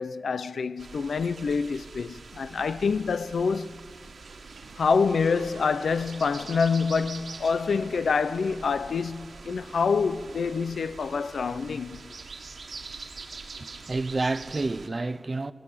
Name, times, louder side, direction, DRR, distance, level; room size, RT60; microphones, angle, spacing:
voice 1, 0.0-3.8 4.8-12.1, left 5 dB, 85° left, 0.6 m, -26 dB
sound 1, 0.8-14.9, right 4 dB, 75° right, 1.7 m, -44 dB
sound 2, 3.9-11.0, right 4 dB, 90° right, 1.9 m, -52 dB
voice 2, 13.6-15.5, right 3 dB, 35° right, 0.6 m, -29 dB
27.5 x 17.0 x 8.6 m
wide cardioid pair, 110°, 0 cm